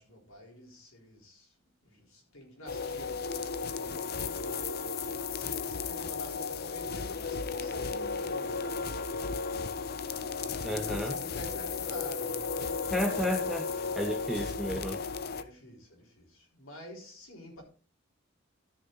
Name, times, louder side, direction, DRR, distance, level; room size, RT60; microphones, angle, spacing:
voice 1, 0.0-1.6 1.8-4.4 5.3-8.9 10.0-12.9 15.3-17.6, equal, 85° left, 3.9 m, -48 dB
sound 1, 2.7-15.4, left 4 dB, 50° left, 0.7 m, -34 dB
voice 2, 10.6-11.1 12.9-13.7 14.0-15.0, equal, ahead, 0.7 m, -32 dB
13.0 x 6.6 x 3.9 m
head